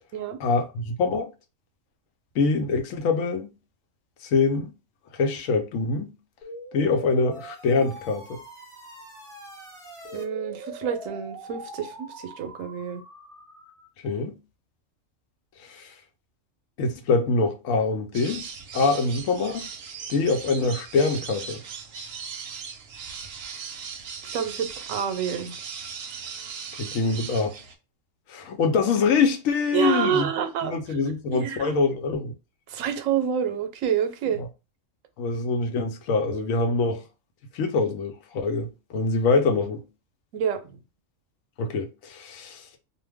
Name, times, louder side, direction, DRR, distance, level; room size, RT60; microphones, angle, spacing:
voice 1, 0.4-1.3 2.4-3.5 4.3-4.7 5.1-6.1 6.7-8.4 14.0-14.4 15.6-15.9 16.8-18.5 18.7-19.7 20.1-21.6 26.8-27.6 28.3-30.3 30.6-32.3 34.4-34.5 35.2-37.0 37.5-39.8 41.6-42.6, left 4 dB, 90° left, 1.0 m, -24 dB
sound 1, 6.4-13.9, right 1 dB, 5° left, 0.6 m, -42 dB
voice 2, 10.1-13.0 24.3-25.5 29.7-30.8 31.3-31.7 32.7-34.4 40.3-40.8, right 8 dB, 90° right, 1.0 m, -28 dB
sound 2, 18.1-27.7, right 6 dB, 60° right, 0.7 m, -38 dB
2.5 x 2.2 x 3.3 m
omnidirectional pair, 1.3 m